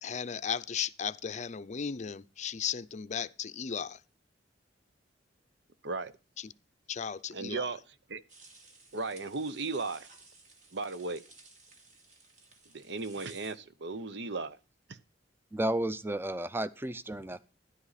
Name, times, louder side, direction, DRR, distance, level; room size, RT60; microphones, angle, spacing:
voice 1, 0.0-4.0 6.4-6.5 6.9-7.7, left 7 dB, 40° left, 0.5 m, -36 dB
voice 2, 7.3-7.8 8.1-8.2 8.9-10.1 10.7-11.2 12.7-14.6, right 3 dB, 70° right, 0.8 m, -36 dB
Baking fried eggs, 8.3-13.5, right 3 dB, 45° right, 2.4 m, -56 dB
voice 3, 15.5-17.4, right 1 dB, 10° right, 0.6 m, -32 dB
12.5 x 11.0 x 4.1 m
head